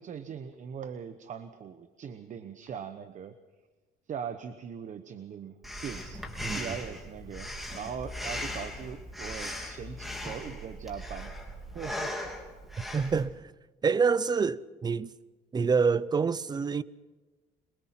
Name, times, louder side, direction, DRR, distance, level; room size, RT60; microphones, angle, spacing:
voice 1, 0.0-3.3 4.1-6.3 6.5-11.3 11.7-12.1, right 7 dB, 45° right, 1.0 m, -40 dB
Breathing, 5.6-13.2, left 1 dB, ahead, 3.4 m, -38 dB
voice 2, 12.9-13.4 13.8-15.1 15.5-16.8, right 5 dB, 25° right, 0.6 m, -26 dB
22.5 x 22.0 x 5.9 m
cardioid pair, 110°, 17 cm